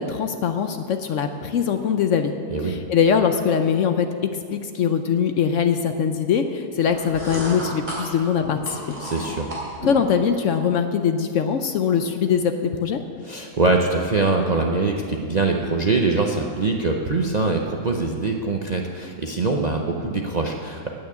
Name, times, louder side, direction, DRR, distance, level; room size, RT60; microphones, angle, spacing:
voice 1, 0.0-2.3 2.6-9.0 9.9-13.0, left 7 dB, 65° left, 7 dB, 0.8 m, -22 dB
voice 2, 2.5-2.8 9.0-9.5 13.2-20.9, right 3 dB, 45° right, 1 dB, 0.5 m, -23 dB
sound 1, 6.8-10.1, right 1 dB, 30° right, 3.7 m, -33 dB
9.5 x 8.7 x 8.3 m, 2.3 s
omnidirectional pair, 1.6 m